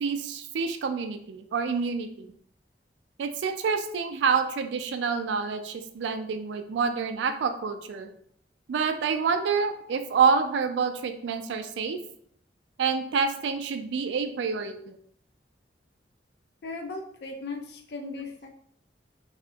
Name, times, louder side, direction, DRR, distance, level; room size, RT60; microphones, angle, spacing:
voice 1, 0.0-2.3 3.2-8.1 8.7-12.0 12.8-15.0, right 5 dB, 85° right, 7 dB, 0.3 m, -27 dB
voice 2, 16.6-18.5, left 3 dB, 65° left, 3 dB, 0.4 m, -37 dB
2.7 x 2.5 x 2.3 m, 0.65 s
head